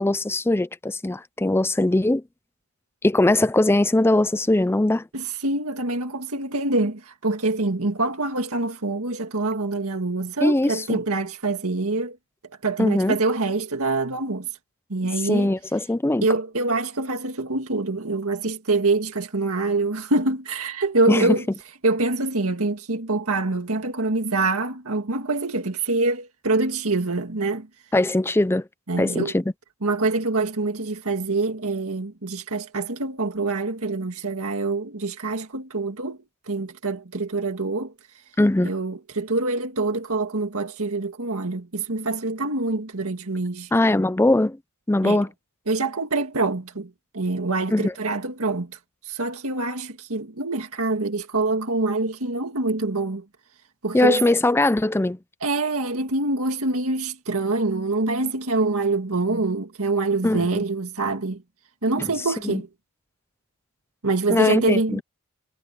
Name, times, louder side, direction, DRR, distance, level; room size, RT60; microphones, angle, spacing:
voice 1, 0.0-2.2 3.0-5.1 10.4-11.0 12.8-13.2 15.2-16.3 21.1-21.4 27.9-28.6 29.0-29.4 38.4-38.7 43.7-44.6 44.9-45.3 47.7-47.9 53.9-55.2 60.2-60.6 62.0-62.1 62.4-62.6 64.3-65.0, left 1 dB, 10° left, 0.5 m, -20 dB
voice 2, 5.1-12.2 12.6-14.5 14.9-15.5 16.2-21.4 21.8-27.7 28.9-29.3 29.8-36.2 36.5-37.9 38.6-43.7 45.0-45.2 45.7-48.8 49.0-53.3 53.8-54.2 55.4-61.4 61.8-62.7 64.0-65.0, right 3 dB, 70° right, 2.0 m, -25 dB
head